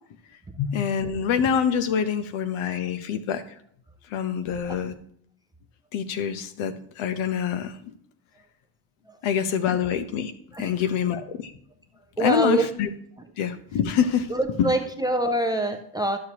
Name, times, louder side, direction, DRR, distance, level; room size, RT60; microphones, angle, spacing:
voice 1, 0.6-3.4 4.1-5.0 5.9-7.9 9.2-10.3 10.6-11.5 12.2-12.9 13.4-14.3 14.6-14.7, left 8 dB, 90° left, 11 dB, 0.9 m, -25 dB
voice 2, 12.2-12.7 14.3-16.2, right 1 dB, 10° right, 7 dB, 0.3 m, -24 dB
11.5 x 6.6 x 2.9 m, 0.66 s
cardioid pair, 145°, 48 cm